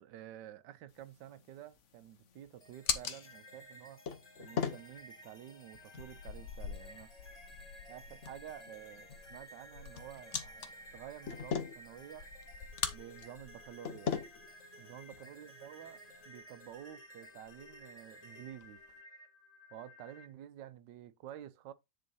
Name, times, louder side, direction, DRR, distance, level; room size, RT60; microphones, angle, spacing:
voice 1, 0.0-4.0 4.4-7.1 7.9-12.3 12.9-14.1 14.8-18.8 19.7-21.7, right 11 dB, 80° right, 1.3 m, -50 dB
sound 1, 0.9-16.2, left 6 dB, 50° left, 1.1 m, -42 dB
sound 2, 2.6-20.3, equal, 25° left, 1.2 m, -55 dB
sound 3, 6.0-14.5 14.8-15.0 15.4-16.2 16.5-16.9 17.2-17.3 17.4-17.9 18.4-18.9, left 5 dB, 75° left, 1.3 m, -53 dB
10.0 x 3.9 x 4.1 m
omnidirectional pair, 1.9 m